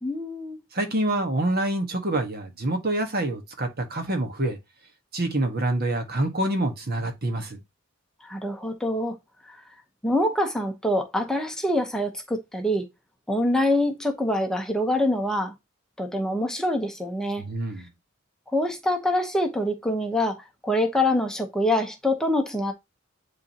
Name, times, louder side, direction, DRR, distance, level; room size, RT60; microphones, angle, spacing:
voice 1, 0.0-0.6 8.2-9.2 10.0-12.8 13.3-15.5 16.0-17.5 18.5-22.7, left 1 dB, 5° left, 1.1 m, -25 dB
voice 2, 0.7-4.6 5.1-7.6 17.4-17.9, right 1 dB, 50° right, 1.6 m, -26 dB
10.5 x 3.8 x 3.0 m
head